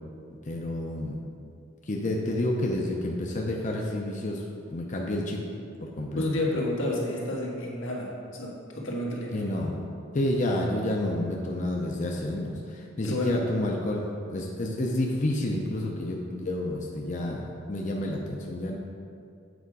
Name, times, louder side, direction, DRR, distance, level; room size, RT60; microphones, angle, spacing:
voice 1, 0.4-1.2 1.9-4.4 4.7-5.4 5.8-6.2 9.3-9.8 10.1-18.8, left 1 dB, 40° left, -1 dB, 0.6 m, -29 dB
voice 2, 6.1-9.5 13.0-13.4, left 1 dB, 85° left, -3 dB, 1.5 m, -30 dB
8.1 x 4.9 x 4.8 m, 2.4 s
head